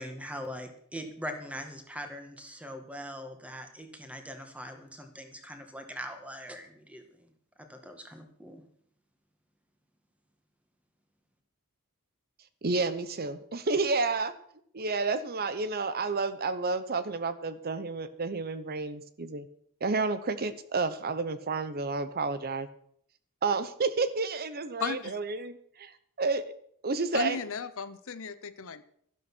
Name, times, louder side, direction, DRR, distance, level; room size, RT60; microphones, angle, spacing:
voice 1, 0.0-7.3 7.7-8.6, equal, 5° right, 5 dB, 1.9 m, -42 dB
voice 2, 12.6-14.3 14.7-19.5 19.8-22.7 23.4-25.9 26.2-26.4 26.8-27.4, right 3 dB, 45° right, 13 dB, 0.8 m, -30 dB
voice 3, 24.8-25.2 27.1-28.8, left 5 dB, 65° left, 13 dB, 0.8 m, -35 dB
12.5 x 11.5 x 6.2 m, 0.64 s
head